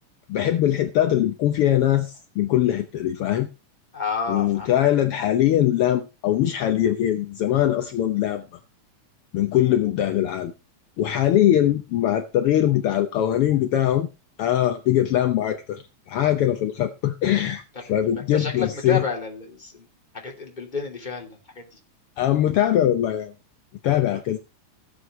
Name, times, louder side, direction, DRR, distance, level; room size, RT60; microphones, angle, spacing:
voice 1, 0.3-3.5 4.3-8.4 9.3-10.5 11.0-14.1 14.4-19.0 22.2-23.3 23.8-24.4, left 12 dB, 75° left, 1.3 m, -22 dB
voice 2, 3.9-4.7 18.1-19.9 20.1-21.8 24.1-24.2, left 5 dB, 15° left, 2.7 m, -30 dB
17.5 x 7.7 x 3.1 m
omnidirectional pair, 3.5 m